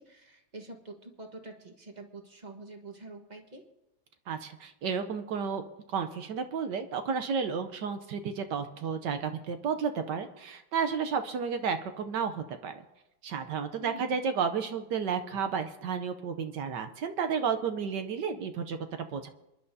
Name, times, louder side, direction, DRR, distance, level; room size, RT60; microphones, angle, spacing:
voice 1, 0.0-3.6 13.8-14.2, right 2 dB, 25° right, 3 dB, 1.3 m, -46 dB
voice 2, 4.3-5.6 5.9-12.8 13.2-19.3, right 6 dB, 70° right, 8 dB, 1.3 m, -32 dB
27.5 x 11.0 x 2.7 m, 0.91 s
omnidirectional pair, 2.1 m